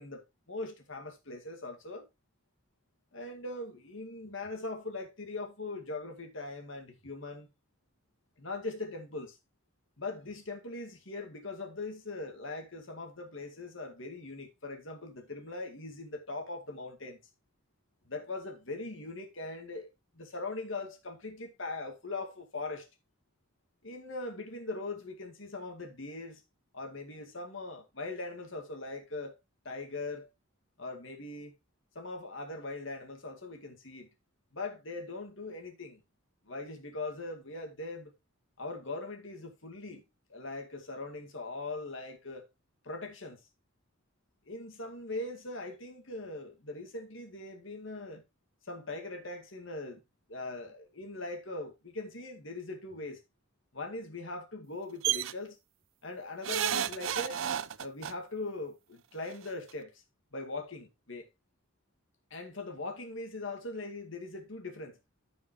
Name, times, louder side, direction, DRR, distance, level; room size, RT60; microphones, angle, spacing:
voice 1, 0.0-2.1 3.1-7.5 8.4-9.4 10.0-17.2 18.1-19.9 20.1-22.9 23.8-26.4 26.7-29.4 29.6-30.3 30.8-31.5 31.9-34.1 34.5-36.0 36.5-38.1 38.6-40.0 40.3-42.5 42.8-43.4 44.5-48.2 48.7-50.0 50.3-53.2 53.7-55.6 56.0-57.4 57.8-60.0 60.3-61.3 62.3-65.0, left 2 dB, 70° left, 2.2 m, -40 dB
sound 1, 55.0-55.3 56.4-58.1 59.3-59.4 59.7-59.8, right 10 dB, 75° right, 0.6 m, -31 dB
14.5 x 5.4 x 3.1 m
head